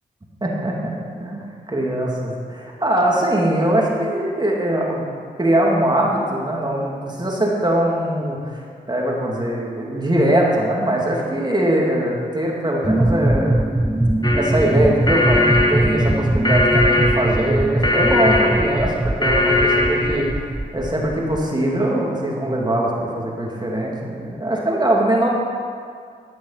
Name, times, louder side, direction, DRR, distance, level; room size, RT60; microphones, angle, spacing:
voice 1, 0.4-5.0 5.4-13.6 14.3-15.4 15.7-20.4 20.7-25.3, right 1 dB, 20° right, -2 dB, 2.9 m, -21 dB
sound 1, 12.8-21.4, right 1 dB, 5° right, 0.6 m, -21 dB
sound 2, 14.2-20.3, left 2 dB, 20° left, 1.6 m, -20 dB
14.0 x 6.2 x 5.9 m, 2.1 s
supercardioid pair, 40°, 19 cm